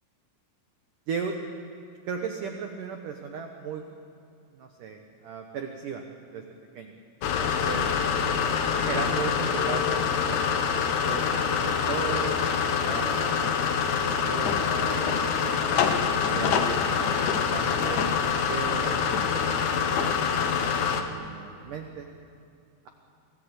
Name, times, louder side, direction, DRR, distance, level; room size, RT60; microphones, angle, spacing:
voice 1, 2.1-3.9 4.5-6.0 6.3-6.4 6.7-6.9 7.2-7.9 8.8-10.6 11.0-12.4 12.8-22.1, right 6 dB, 80° right, 4 dB, 1.8 m, -37 dB
sound 1, 7.2-21.0, left 6 dB, 75° left, 1.8 m, -25 dB
27.0 x 17.0 x 8.2 m, 2.5 s
omnidirectional pair, 5.6 m